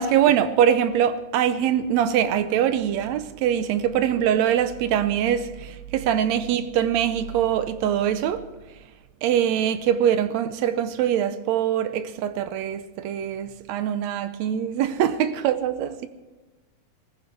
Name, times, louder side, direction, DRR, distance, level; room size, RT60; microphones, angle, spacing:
voice 1, 0.0-8.5 9.2-16.1, right 9 dB, 75° right, 1.8 m, -23 dB
18.0 x 14.5 x 4.5 m
omnidirectional pair, 3.6 m